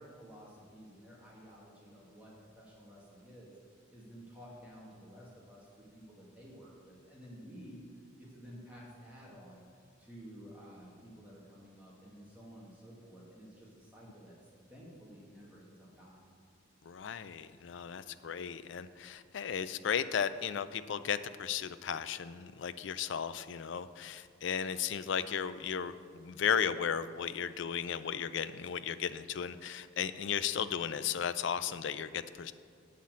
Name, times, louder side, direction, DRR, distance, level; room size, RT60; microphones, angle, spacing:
voice 1, 0.0-7.8 8.2-9.6 10.0-14.3 14.7-16.2, equal, 5° right, -6 dB, 1.8 m, -53 dB
voice 2, 16.9-32.5, left 7 dB, 60° left, 14 dB, 0.4 m, -35 dB
8.3 x 5.7 x 7.5 m, 2.3 s
head